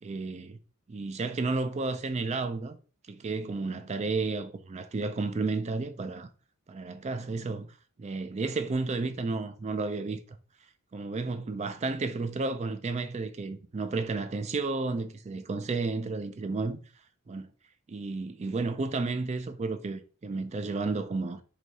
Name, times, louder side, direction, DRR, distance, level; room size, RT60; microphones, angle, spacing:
voice 1, 0.0-0.6 0.9-2.8 3.1-6.3 6.7-7.7 8.0-10.4 10.9-16.8 17.3-17.5 17.9-21.4, right 3 dB, 30° right, 0.4 m, -32 dB
4.7 x 2.7 x 4.0 m
head